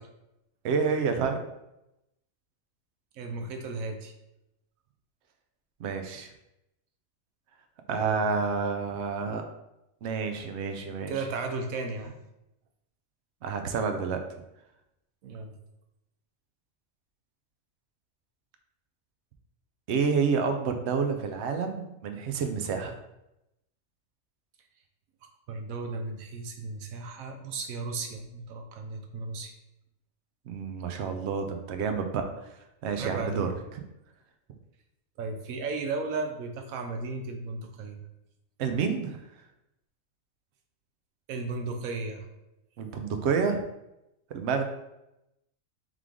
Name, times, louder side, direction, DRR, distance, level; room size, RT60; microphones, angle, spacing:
voice 1, 0.6-1.4 5.8-6.3 7.9-9.4 10.0-11.1 13.4-14.2 19.9-22.9 30.5-32.2 32.8-33.5 38.6-39.2 42.8-43.6 44.3-44.6, right 5 dB, 65° right, 6 dB, 0.7 m, -29 dB
voice 2, 3.1-4.1 7.9-8.4 11.1-12.2 15.2-15.6 25.5-29.5 33.0-33.5 35.2-38.0 41.3-42.3, right 3 dB, 85° right, 5 dB, 1.1 m, -35 dB
3.7 x 3.2 x 3.6 m, 0.89 s
omnidirectional pair, 1.4 m